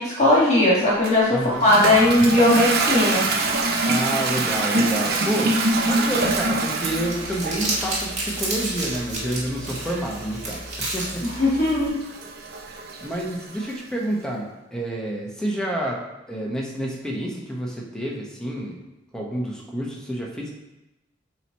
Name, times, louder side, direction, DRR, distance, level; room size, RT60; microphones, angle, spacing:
voice 1, 0.0-3.2 11.4-11.9, left 1 dB, 35° left, -7 dB, 2.0 m, -18 dB
Toilet flush, 1.0-13.8, right 2 dB, 55° right, 0.7 m, -26 dB
voice 2, 1.3-1.7 3.8-5.6 5.8-11.2 13.0-16.0 16.3-18.8 19.1-20.5, right 1 dB, 5° left, -2 dB, 1.0 m, -29 dB
Crumpling crinkling, 6.8-11.9, right 2 dB, 35° right, 1.7 m, -31 dB
7.7 x 3.1 x 4.2 m, 0.99 s
head